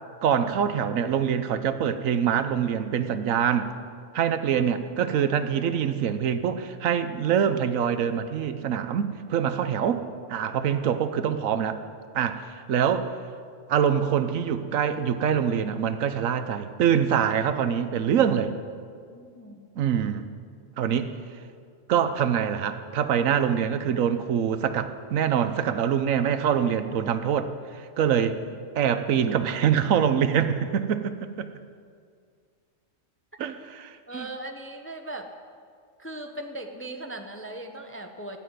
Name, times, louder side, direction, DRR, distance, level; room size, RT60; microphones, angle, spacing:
voice 1, 0.2-3.7 4.1-11.8 12.1-13.1 13.7-18.5 19.8-20.3 20.8-21.1 21.9-28.4 28.8-31.5 33.4-34.3, right 8 dB, 85° right, 11 dB, 1.2 m, -25 dB
voice 2, 19.0-19.7 34.1-35.3 36.0-38.4, right 1 dB, 15° left, 5 dB, 0.6 m, -39 dB
14.0 x 7.5 x 9.4 m, 2.1 s
omnidirectional pair, 1.4 m